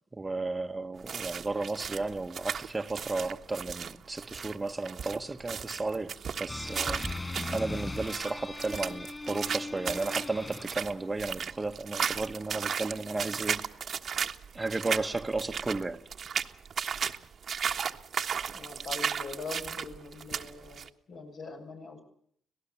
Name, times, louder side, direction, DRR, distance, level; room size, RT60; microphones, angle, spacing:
voice 1, 0.1-7.0 7.5-13.7 14.1-14.2 14.5-16.0, right 3 dB, 20° right, 1.4 m, -34 dB
sound 1, 1.0-20.9, right 7 dB, 50° right, 1.4 m, -35 dB
sound 2, 6.5-11.0, left 2 dB, 20° left, 5.1 m, -38 dB
voice 2, 18.5-22.0, left 3 dB, 60° left, 7.9 m, -42 dB
26.0 x 18.0 x 7.2 m
cardioid pair, 90°, 0 cm